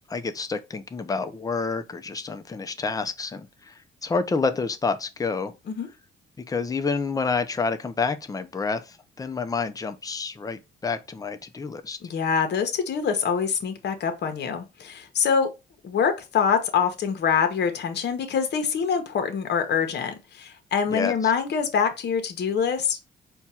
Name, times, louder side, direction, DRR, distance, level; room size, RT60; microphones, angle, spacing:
voice 1, 0.1-3.7 4.0-5.5 6.5-12.0 20.9-21.3, left 4 dB, 20° left, 0.5 m, -28 dB
voice 2, 12.0-15.5 15.8-23.0, left 6 dB, 60° left, 0.9 m, -25 dB
4.5 x 2.3 x 4.2 m
cardioid pair, 90°, 20 cm